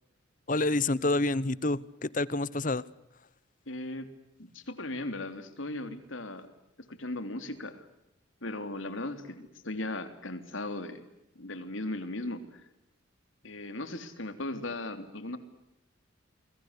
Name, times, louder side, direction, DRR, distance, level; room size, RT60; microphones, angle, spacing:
voice 1, 0.5-2.8, left 2 dB, 40° left, 20 dB, 0.9 m, -28 dB
voice 2, 3.7-4.1 4.4-6.5 6.9-7.8 8.4-11.0 11.3-12.6 13.4-15.4, left 2 dB, 75° left, 9 dB, 3.4 m, -37 dB
29.0 x 22.0 x 8.3 m, 0.89 s
head